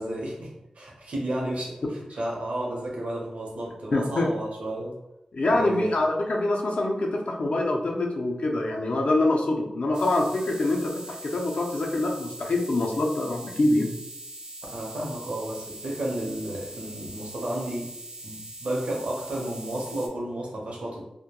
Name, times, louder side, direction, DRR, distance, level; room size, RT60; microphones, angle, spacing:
voice 1, 0.0-5.0 5.5-5.9 14.7-17.9 18.2-21.0, right 1 dB, 70° right, -2 dB, 0.7 m, -32 dB
voice 2, 3.9-4.3 5.3-13.9, left 2 dB, 65° left, 0 dB, 0.4 m, -25 dB
sound 1, 9.9-20.1, right 1 dB, 35° right, 0.3 m, -42 dB
2.2 x 2.1 x 2.8 m, 0.89 s
wide cardioid pair, 105°, 2 cm